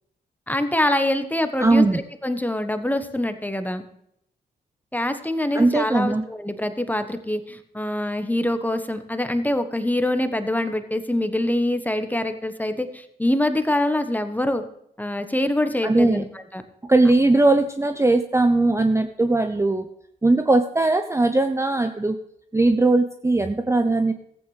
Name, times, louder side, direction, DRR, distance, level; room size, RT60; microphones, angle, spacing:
voice 1, 0.5-3.8 4.9-14.6 15.0-16.2 16.5-16.6, left 1 dB, 10° left, 9 dB, 1.2 m, -24 dB
voice 2, 1.6-2.0 5.5-6.2 15.8-16.2 16.9-19.9 20.2-22.2 22.5-24.1, right 2 dB, 15° right, 7 dB, 0.7 m, -19 dB
14.5 x 8.6 x 3.3 m, 0.74 s
supercardioid pair, 45°, 19 cm